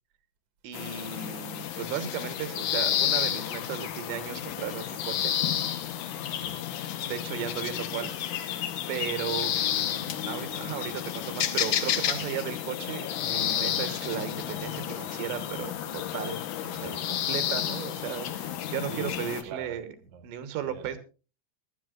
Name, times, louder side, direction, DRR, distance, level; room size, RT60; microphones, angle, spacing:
voice 1, 0.6-5.4 7.0-8.2 8.9-19.9 20.2-21.0, right 9 dB, 75° right, 3.3 m, -35 dB
sound 1, 0.7-19.4, left 10 dB, 90° left, 1.7 m, -31 dB
voice 2, 6.3-6.8 18.8-19.2 19.5-20.3 20.6-21.0, right 8 dB, 55° right, 1.9 m, -43 dB
22.5 x 11.5 x 2.4 m
omnidirectional pair, 5.2 m